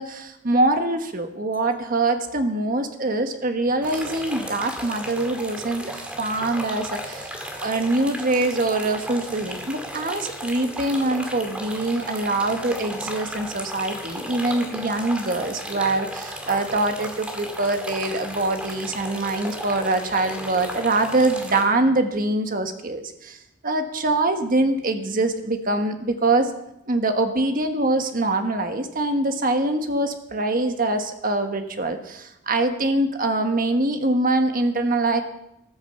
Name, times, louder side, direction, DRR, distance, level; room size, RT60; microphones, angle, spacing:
voice 1, 0.0-23.4 23.6-26.5 26.9-35.2, right 2 dB, 40° right, 6 dB, 1.4 m, -24 dB
sound 1, 3.8-21.6, equal, 5° right, 1.8 m, -35 dB
14.0 x 11.5 x 6.9 m, 0.85 s
head